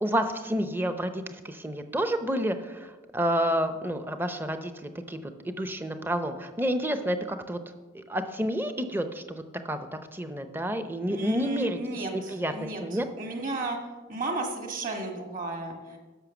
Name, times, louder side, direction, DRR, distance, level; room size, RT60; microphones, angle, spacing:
voice 1, 0.0-7.6 7.9-11.8 12.1-12.5 12.8-13.1, equal, 10° right, 8 dB, 0.6 m, -29 dB
voice 2, 11.1-12.8 13.2-13.8 14.1-16.0, right 2 dB, 40° right, 3 dB, 1.7 m, -34 dB
11.0 x 6.5 x 7.0 m, 1.3 s
head